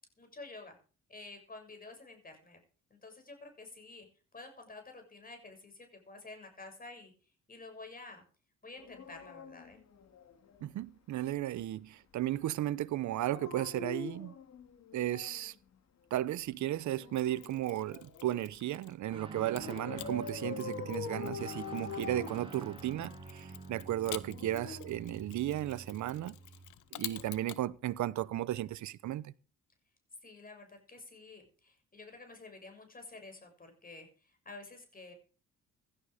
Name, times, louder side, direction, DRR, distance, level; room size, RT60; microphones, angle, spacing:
voice 1, 0.2-0.8 1.1-2.6 2.9-4.1 4.3-7.1 7.5-8.2 8.6-9.8 30.2-34.1 34.5-35.1, left 3 dB, 30° left, 7.0 m, -50 dB
Dog, 8.8-10.6 13.1-15.5 16.8-18.4 19.6-23.1 24.1-25.8 27.0-27.2, left 6 dB, 60° left, 2.6 m, -45 dB
voice 2, 10.6-14.3 14.9-15.5 16.1-26.3 26.9-29.3, right 13 dB, 70° right, 0.9 m, -35 dB
Mechanisms, 17.1-19.0 19.5-27.6, left 14 dB, 80° left, 1.2 m, -49 dB
Guitar, 19.1-26.8, right 3 dB, 15° right, 3.2 m, -47 dB
16.5 x 12.0 x 5.1 m
cardioid pair, 90°, 30 cm